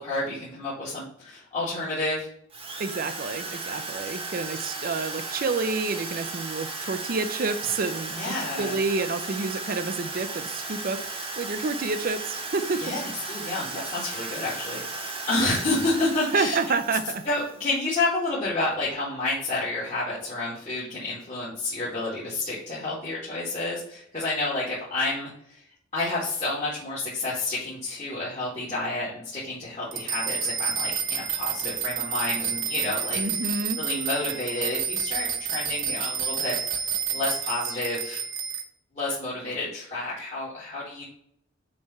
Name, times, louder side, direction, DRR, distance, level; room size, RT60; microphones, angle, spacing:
voice 1, 0.0-2.3 8.1-8.8 12.8-16.6 17.3-25.6 25.9-33.2 33.8-38.2 38.9-41.0, left 2 dB, 35° left, -9 dB, 2.0 m, -30 dB
Drill, 2.5-17.7, right 3 dB, 30° right, 1.2 m, -35 dB
voice 2, 2.8-11.1 11.4-13.0 13.7-13.8 15.4-15.5 16.3-17.2 33.1-33.8, right 4 dB, 45° right, 9 dB, 0.5 m, -29 dB
sound 1, 29.9-38.6, right 7 dB, 70° right, 0.9 m, -29 dB
7.1 x 3.4 x 5.4 m, 0.70 s
head